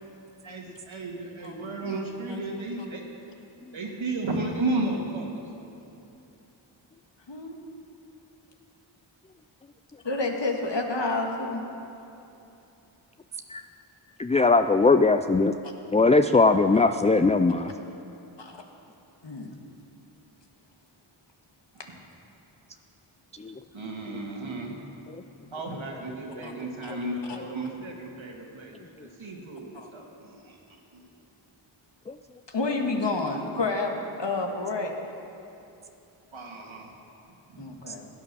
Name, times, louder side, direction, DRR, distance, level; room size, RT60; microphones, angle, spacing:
voice 1, 0.4-3.0 3.7-5.4 23.7-24.8 25.5-30.6 30.9-31.0 36.3-36.9 37.5-37.6, right 2 dB, 75° right, 0 dB, 2.1 m, -33 dB
voice 2, 10.0-11.6 18.4-18.6 19.2-19.6 25.4-25.8 26.4-26.5 26.8-26.9 27.3-27.4 29.7-29.9 32.5-34.9 37.6-38.1, left 3 dB, 60° left, 2 dB, 1.8 m, -29 dB
voice 3, 14.2-15.5 15.9-17.7 23.4-23.6 25.1-25.2 32.1-32.2 37.9-38.0, left 3 dB, 15° left, 8 dB, 0.3 m, -20 dB
16.0 x 9.4 x 6.9 m, 2.8 s
cardioid pair, 50°, 48 cm